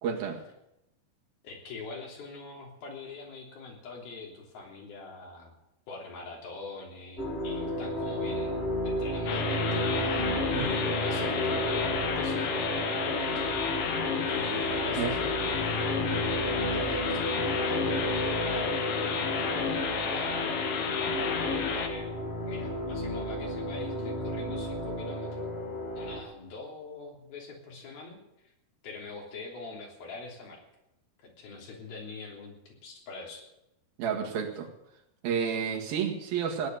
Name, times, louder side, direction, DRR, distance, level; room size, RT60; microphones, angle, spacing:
voice 1, 0.0-0.4 10.5-10.7 15.0-15.2 34.0-34.7 35.2-36.7, right 7 dB, 75° right, 2 dB, 3.6 m, -30 dB
voice 2, 1.4-5.5 5.9-12.8 13.2-13.5 14.2-19.1 19.4-20.5 21.0-22.1 22.5-25.5 25.9-28.2 28.4-28.5 28.8-30.6 31.2-33.4, left 3 dB, 75° left, 0 dB, 5.1 m, -43 dB
sound 1, 7.2-26.2, equal, 20° left, 1.8 m, -32 dB
sound 2, 9.3-21.9, left 6 dB, 55° left, 1.7 m, -32 dB
17.5 x 10.0 x 8.1 m, 0.87 s
omnidirectional pair, 4.3 m